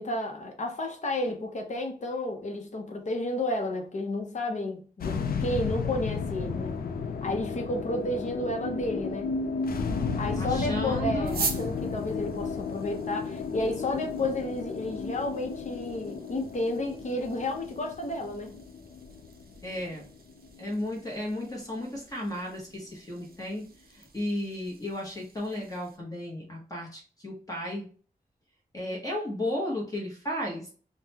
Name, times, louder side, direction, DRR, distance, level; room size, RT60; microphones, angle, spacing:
voice 1, 0.0-6.8 7.2-9.3 10.2-18.5, left 1 dB, 50° left, 0.7 m, -32 dB
sound 1, 5.0-21.4, left 4 dB, 90° left, 0.4 m, -33 dB
voice 2, 10.4-11.4 19.6-20.1 20.6-23.6 23.9-27.9 28.7-30.7, left 1 dB, 25° left, 0.9 m, -34 dB
sound 2, 11.2-26.0, right 5 dB, 90° right, 0.5 m, -43 dB
3.7 x 2.1 x 2.8 m
wide cardioid pair, 160°, 15 cm